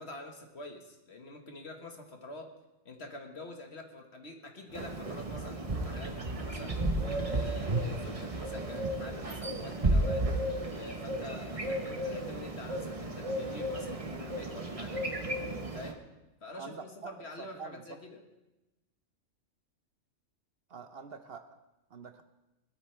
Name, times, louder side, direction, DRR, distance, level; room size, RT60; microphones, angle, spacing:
voice 1, 0.0-2.5 2.8-10.3 10.7-15.0 15.7-16.0 16.4-18.2, left 1 dB, 55° left, 3 dB, 1.9 m, -46 dB
sound 1, 4.7-15.9, right 1 dB, 30° right, 1.1 m, -33 dB
voice 2, 16.6-17.1 17.6-17.8 20.7-21.5 21.9-22.2, right 5 dB, 55° right, 8 dB, 0.9 m, -45 dB
20.5 x 13.0 x 3.4 m, 0.99 s
omnidirectional pair, 1.3 m